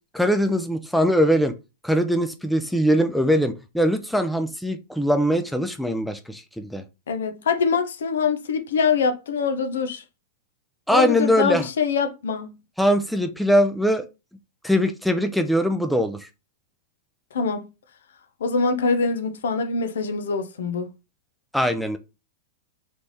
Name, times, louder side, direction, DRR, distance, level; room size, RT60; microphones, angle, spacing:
voice 1, 0.1-1.5 1.8-6.8 10.9-11.7 12.8-14.0 14.6-16.3 21.5-22.0, equal, ahead, 0.5 m, -21 dB
voice 2, 7.1-10.0 10.9-12.5 17.3-17.7 18.4-20.9, left 5 dB, 85° left, 0.8 m, -24 dB
3.5 x 3.2 x 4.1 m
hypercardioid pair, 140°, 0 cm